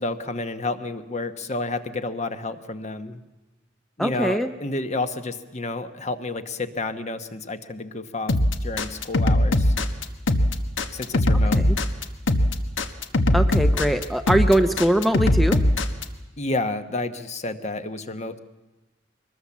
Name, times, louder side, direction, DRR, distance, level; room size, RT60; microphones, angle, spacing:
voice 1, 0.0-3.2 4.0-9.7 10.9-11.6 16.4-18.4, left 2 dB, 35° left, 9 dB, 1.1 m, -30 dB
voice 2, 4.0-4.5 11.5-11.8 13.3-15.6, right 1 dB, ahead, 7 dB, 0.7 m, -22 dB
sound 1, 8.3-16.0, left 1 dB, 70° left, 1.4 m, -20 dB
23.0 x 20.5 x 7.3 m, 1.1 s
head